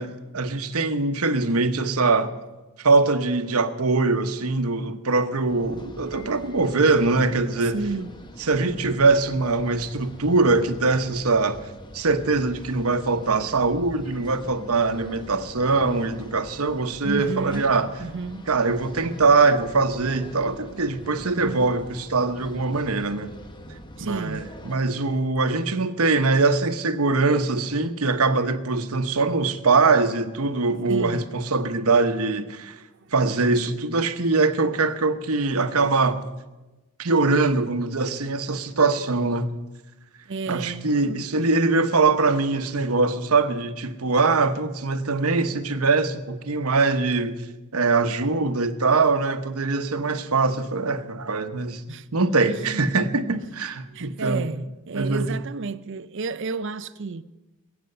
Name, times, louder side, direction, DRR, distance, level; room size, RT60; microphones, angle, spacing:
voice 1, 0.0-2.3 2.8-7.8 8.4-11.7 11.9-17.9 18.5-23.3 24.0-32.8 33.1-36.2 37.0-39.5 40.5-47.4 47.7-51.8 52.1-54.5 54.9-55.4, right 3 dB, 75° right, 1.0 m, -22 dB
sound 1, 5.5-24.8, equal, 20° left, 1.0 m, -43 dB
voice 2, 7.7-8.1 17.0-17.7 18.0-18.5 21.2-21.7 24.0-24.4 30.9-31.2 32.7-33.1 40.3-41.5 51.9-52.8 53.9-57.2, right 4 dB, 55° right, 0.6 m, -32 dB
21.0 x 9.0 x 6.8 m
head